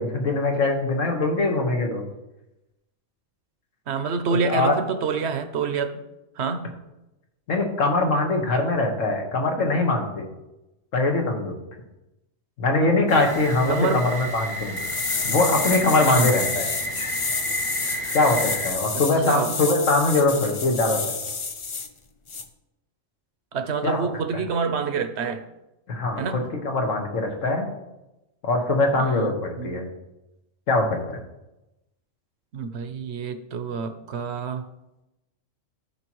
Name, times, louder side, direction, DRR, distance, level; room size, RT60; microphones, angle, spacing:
voice 1, 0.0-2.0 4.4-4.7 7.5-10.3 10.9-11.5 12.6-14.8 15.2-16.7 18.1-21.0 23.8-24.1 25.9-27.7 28.4-29.9 30.7-31.2, left 2 dB, 75° left, 2 dB, 1.7 m, -22 dB
voice 2, 3.9-6.0 6.4-6.7 13.7-14.1 16.0-16.3 18.9-19.5 23.5-25.4 26.2-26.4 28.9-29.3 29.6-29.8 32.5-34.7, right 5 dB, 60° right, 9 dB, 0.9 m, -27 dB
sound 1, 13.1-18.7, right 2 dB, 25° left, 1.4 m, -32 dB
sound 2, 14.8-21.9 22.3-22.4, left 4 dB, 45° left, 0.4 m, -29 dB
13.0 x 5.6 x 3.1 m, 0.95 s
omnidirectional pair, 1.4 m